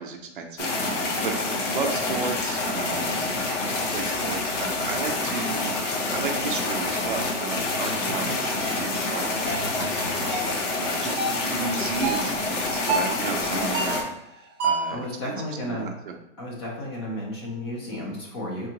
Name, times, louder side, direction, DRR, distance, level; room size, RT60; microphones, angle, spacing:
voice 1, 0.0-15.3 15.6-16.1, right 5 dB, 45° right, 3 dB, 0.5 m, -34 dB
sound 1, 0.6-14.0, left 2 dB, 75° left, 1.1 m, -27 dB
voice 2, 8.0-8.4 13.4-13.7 14.9-15.9 16.4-18.7, left 1 dB, 20° left, -1 dB, 0.5 m, -33 dB
sound 2, 8.6-8.8 9.4-9.7 10.3-10.6 11.2-11.4 12.0-12.3 12.9-13.2 13.7-14.1 14.6-14.9, right 3 dB, 15° right, 1.1 m, -27 dB
3.9 x 3.6 x 2.9 m, 0.82 s
hypercardioid pair, 165°, 37 cm